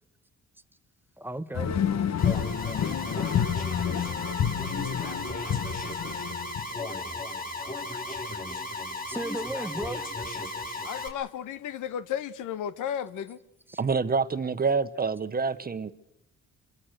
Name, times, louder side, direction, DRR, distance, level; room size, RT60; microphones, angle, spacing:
voice 1, 1.2-1.8 5.7-5.8 6.0-6.1 9.1-10.3 13.7-13.8, right 1 dB, 5° right, 1.1 m, -36 dB
sound 1, 1.5-6.7, left 8 dB, 60° left, 1.5 m, -29 dB
Alarm, 2.2-11.1, left 2 dB, 30° left, 4.9 m, -35 dB
voice 2, 10.8-13.4, left 9 dB, 85° left, 1.3 m, -33 dB
voice 3, 13.8-15.9, right 4 dB, 30° right, 1.1 m, -27 dB
25.5 x 22.5 x 6.6 m
cardioid pair, 90°, 30 cm